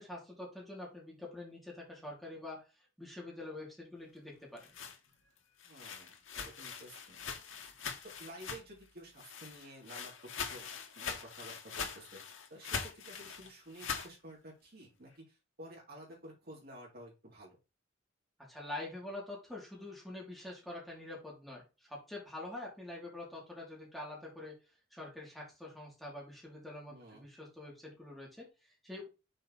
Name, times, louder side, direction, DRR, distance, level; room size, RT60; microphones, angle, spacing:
voice 1, 0.0-2.6 3.0-4.7 18.5-24.5 24.9-29.1, left 2 dB, ahead, -4 dB, 2.8 m, -46 dB
sound 1, 4.3-8.9 9.2-14.1, left 6 dB, 80° left, 1.5 m, -42 dB
voice 2, 5.6-7.3 8.0-10.1 10.5-10.6 10.9-12.2 12.5-17.6 26.9-27.3, right 1 dB, 50° right, -2 dB, 3.2 m, -52 dB
6.5 x 4.3 x 4.1 m, 0.29 s
head